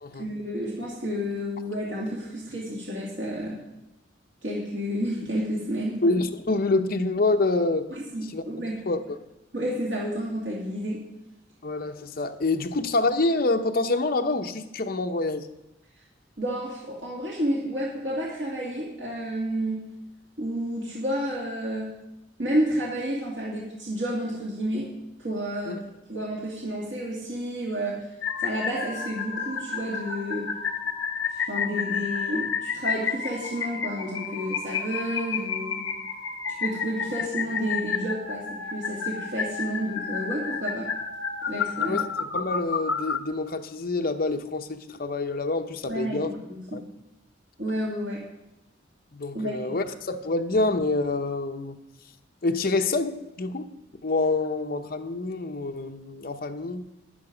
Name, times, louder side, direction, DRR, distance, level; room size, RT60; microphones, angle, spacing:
voice 1, 0.1-3.6 4.4-6.0 7.9-8.8 9.5-11.1 16.4-19.9 20.4-22.0 22.4-24.9 25.2-25.8 26.1-28.1 28.4-30.5 31.3-35.8 36.6-40.9 41.5-42.0 45.9-46.8 47.6-48.2 49.3-49.7, equal, 70° right, -5 dB, 2.3 m, -30 dB
voice 2, 6.0-7.9 8.3-8.4 8.9-9.0 11.6-15.5 25.7-25.8 41.8-46.3 46.7-46.8 49.1-51.8 52.4-53.7 54.0-56.8, left 2 dB, 50° left, 5 dB, 0.8 m, -27 dB
sound 1, 28.2-43.2, left 6 dB, 75° left, 0.9 m, -31 dB
11.5 x 10.5 x 5.1 m, 0.92 s
head